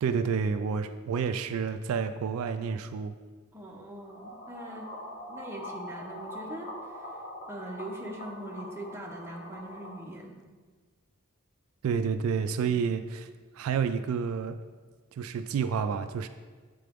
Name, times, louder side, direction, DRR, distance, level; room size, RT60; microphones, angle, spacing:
voice 1, 0.0-3.1 11.8-13.3 13.6-14.6 15.2-16.3, right 6 dB, 80° right, 11 dB, 0.3 m, -29 dB
voice 2, 3.5-4.9 5.3-7.1 7.5-10.4, right 1 dB, 10° right, -1 dB, 0.7 m, -42 dB
sound 1, 4.0-10.0, left 1 dB, 60° left, 1.4 m, -43 dB
7.7 x 3.8 x 3.5 m, 1.4 s
head